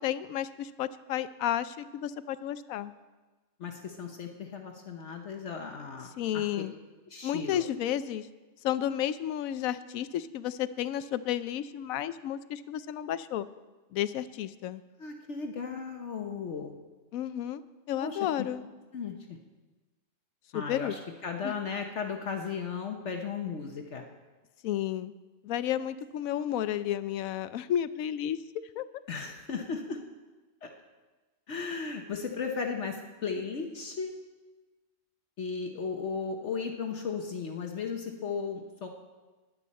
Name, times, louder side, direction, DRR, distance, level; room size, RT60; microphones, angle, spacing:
voice 1, 0.0-2.9 6.2-6.7 7.2-8.3 8.6-13.5 13.9-14.8 17.1-17.6 17.9-18.6 20.5-20.9 21.4-21.5 24.6-25.1 25.4-28.8, left 11 dB, 85° left, 14 dB, 1.0 m, -32 dB
voice 2, 3.6-6.4 7.1-7.6 15.0-16.8 18.0-18.5 18.9-19.2 20.5-24.0 29.1-30.0 30.6-30.7 31.5-34.1 35.4-38.9, left 5 dB, 60° left, 3 dB, 1.2 m, -36 dB
21.0 x 8.5 x 4.2 m, 1.2 s
omnidirectional pair, 1.4 m